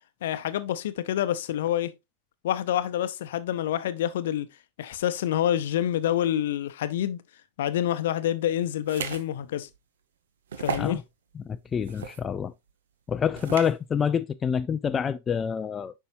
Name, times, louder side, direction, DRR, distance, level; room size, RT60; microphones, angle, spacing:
voice 1, 0.2-1.9 2.4-4.5 4.8-7.2 7.6-9.7 10.6-11.0, left 11 dB, 55° left, 0.7 m, -27 dB
sound 1, 8.8-9.2 9.7-9.8 10.5-11.0 11.8-12.2 13.4-13.7, right 7 dB, 65° right, 0.9 m, -34 dB
voice 2, 11.4-12.5 13.1-15.9, left 7 dB, 20° left, 0.4 m, -27 dB
9.3 x 5.6 x 2.5 m
figure-of-eight pair, 90°, 0 cm